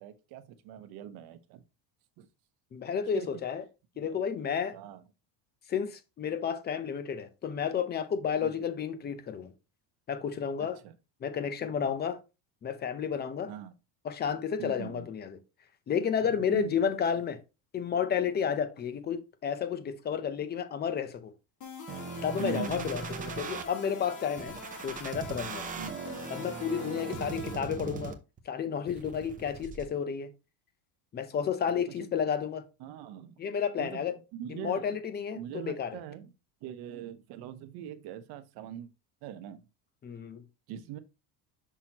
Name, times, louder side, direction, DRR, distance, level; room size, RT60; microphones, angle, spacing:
voice 1, 0.0-1.6 2.2-2.3 3.1-3.3 4.0-4.2 4.7-5.0 8.4-8.5 10.6-10.9 13.5-13.7 14.6-15.1 16.2-16.8 22.4-22.9 25.8-26.0 32.0-32.1 32.8-33.3 33.8-34.0 34.3-34.8 35.3-36.3 36.6-38.9 39.2-39.6 40.7-41.0, right 10 dB, 60° right, 1.0 m, -41 dB
voice 2, 2.7-3.6 4.0-4.8 5.7-9.5 10.1-10.8 11.2-12.2 12.6-13.5 14.0-15.4 15.9-17.4 17.7-21.3 22.2-24.6 24.8-25.7 26.3-28.2 28.5-30.3 31.1-32.6 33.4-34.2 34.5-36.0 40.0-40.4, left 7 dB, 25° left, 0.7 m, -31 dB
sound 1, 21.6-27.5, left 2 dB, 45° left, 2.6 m, -43 dB
sound 2, 21.9-23.6 24.4-28.4 28.9-29.9, right 5 dB, 20° right, 0.6 m, -40 dB
6.1 x 6.0 x 2.9 m
cardioid pair, 150°, 43 cm